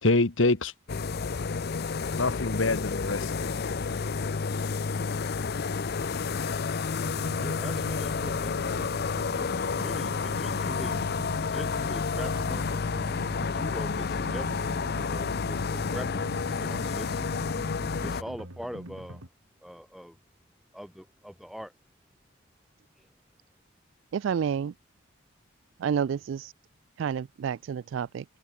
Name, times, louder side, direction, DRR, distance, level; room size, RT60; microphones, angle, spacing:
voice 1, 0.0-0.7 2.2-3.5, left 2 dB, 70° left, 1.5 m, -25 dB
sound 1, 0.9-18.2, left 5 dB, 50° left, 0.5 m, -30 dB
sound 2, 7.0-19.3, right 1 dB, 85° right, 3.9 m, -44 dB
voice 2, 7.4-11.0 11.4-12.7 13.3-14.6 15.0-17.2 18.0-19.2 19.6-20.1 20.7-21.7, equal, ahead, 1.8 m, -43 dB
voice 3, 24.1-24.7 25.8-26.5 27.0-28.2, right 7 dB, 65° right, 0.3 m, -29 dB
head